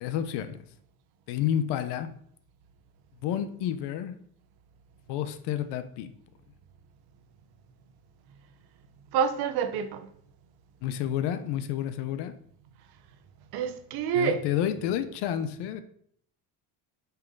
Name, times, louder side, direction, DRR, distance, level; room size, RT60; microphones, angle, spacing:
voice 1, 0.0-0.6 1.3-2.1 3.2-4.1 5.1-6.1 10.8-12.3 14.1-15.8, left 10 dB, 75° left, 0.9 m, -30 dB
voice 2, 9.1-10.1 13.5-14.4, right 7 dB, 65° right, 1.0 m, -27 dB
9.2 x 5.8 x 3.9 m
cardioid pair, 175°, 41 cm